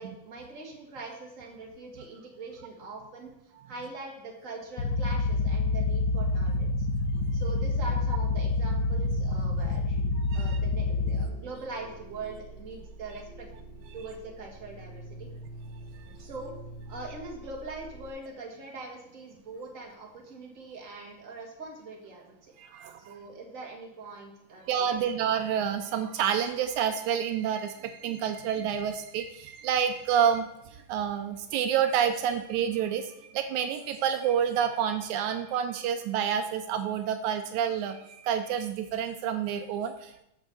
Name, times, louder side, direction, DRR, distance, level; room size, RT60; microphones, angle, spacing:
voice 1, 0.0-3.3 3.7-6.9 7.3-10.0 10.3-13.5 13.9-15.3 16.2-16.5 16.9-22.5 23.1-25.1, right 3 dB, 30° right, 0 dB, 1.9 m, -42 dB
sound 1, 4.8-11.3, left 3 dB, 90° left, 1.4 m, -27 dB
sound 2, 7.1-18.1, right 2 dB, 65° left, 3.2 m, -47 dB
voice 2, 10.2-10.6 22.6-23.1 24.7-40.2, right 8 dB, 85° right, 8 dB, 2.0 m, -29 dB
8.0 x 6.4 x 6.9 m, 0.80 s
omnidirectional pair, 3.5 m